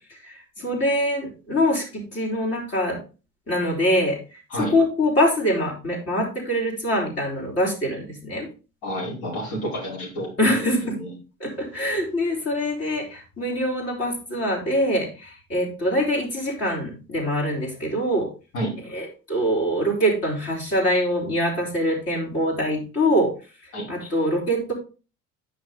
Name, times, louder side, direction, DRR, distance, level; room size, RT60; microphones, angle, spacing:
voice 1, 0.1-3.0 3.5-8.5 10.4-11.0 11.4-18.3 18.9-23.3 23.9-24.7, equal, 35° left, -4 dB, 4.1 m, -24 dB
voice 2, 8.8-10.6 10.9-11.1 18.5-18.7 23.7-23.9, right 1 dB, 60° left, -3 dB, 4.8 m, -29 dB
9.5 x 5.9 x 3.9 m, 0.33 s
figure-of-eight pair, 55°, 41 cm